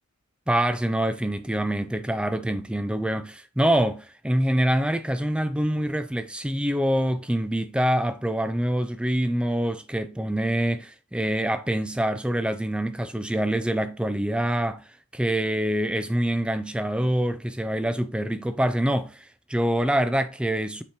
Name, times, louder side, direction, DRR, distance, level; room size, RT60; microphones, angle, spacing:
voice 1, 0.5-14.8 15.1-20.8, right 1 dB, 5° right, 0.3 m, -25 dB
6.8 x 5.0 x 2.9 m
head